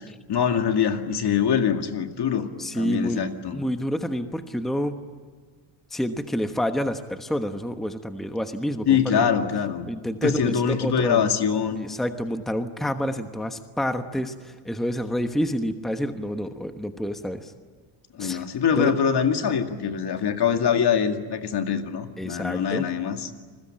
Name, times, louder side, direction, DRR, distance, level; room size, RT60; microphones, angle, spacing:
voice 1, 0.3-2.5 2.7-3.6 8.9-9.9 10.2-11.9 18.1-23.3, left 7 dB, 55° left, 6 dB, 2.3 m, -24 dB
voice 2, 2.6-3.2 3.5-5.0 5.9-9.2 9.9-11.3 11.8-17.5 18.2-18.4 18.7-18.9 22.2-22.9, equal, ahead, 7 dB, 1.1 m, -28 dB
29.5 x 21.5 x 8.8 m, 1.5 s
cardioid pair, 135°, 48 cm